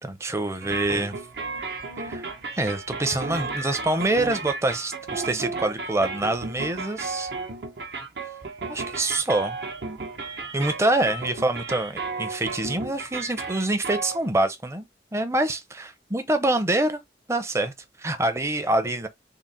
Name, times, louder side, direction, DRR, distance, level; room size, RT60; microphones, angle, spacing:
voice 1, 0.0-1.2 2.0-7.3 8.7-9.6 10.5-14.9 15.1-15.6 16.1-17.0 17.3-17.7 18.0-19.1, right 2 dB, 15° right, 0.5 m, -25 dB
sound 1, 0.6-14.2, right 3 dB, 75° right, 0.9 m, -34 dB
3.7 x 2.1 x 4.0 m
head